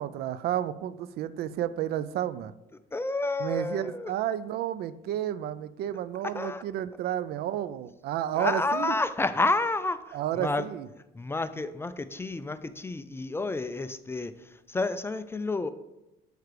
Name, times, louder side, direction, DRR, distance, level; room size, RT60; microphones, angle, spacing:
voice 1, 0.0-2.5 3.4-8.9 10.1-10.9, right 11 dB, 70° right, 15 dB, 0.4 m, -31 dB
voice 2, 2.9-4.1 6.2-6.6 8.3-10.7 11.1-15.7, left 2 dB, 15° left, 12 dB, 0.3 m, -30 dB
6.5 x 4.8 x 4.7 m, 0.96 s
cardioid pair, 110°, 17 cm